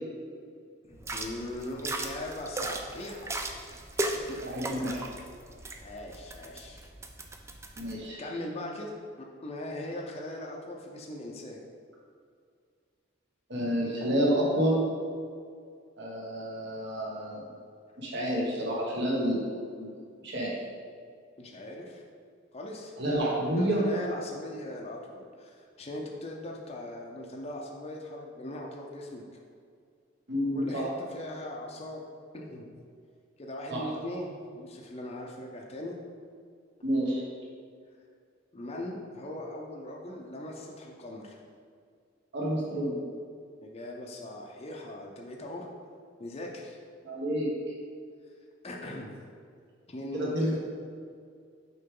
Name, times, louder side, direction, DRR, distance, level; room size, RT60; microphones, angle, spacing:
voice 1, 0.8-3.3 4.1-4.4 5.8-6.9 7.7-9.0 9.4-11.6 21.4-22.0 22.5-22.9 23.6-29.3 30.5-32.0 32.3-32.6 33.4-36.0 38.5-41.4 43.6-45.7 46.2-46.8 48.6-49.1 49.9-50.6, left 1 dB, 30° left, -1 dB, 0.6 m, -40 dB
sound 1, 1.0-7.9, right 2 dB, 15° right, 0.3 m, -37 dB
voice 2, 4.4-5.0 7.8-8.2 13.5-14.8 16.0-17.4 18.0-19.5 19.8-19.9 20.2-20.6 23.0-23.8 30.3-30.8 33.7-33.8 36.8-37.2 42.3-43.0 47.0-47.5 50.1-50.5, equal, 60° right, -4 dB, 1.4 m, -29 dB
6.6 x 4.7 x 3.8 m, 2.2 s
head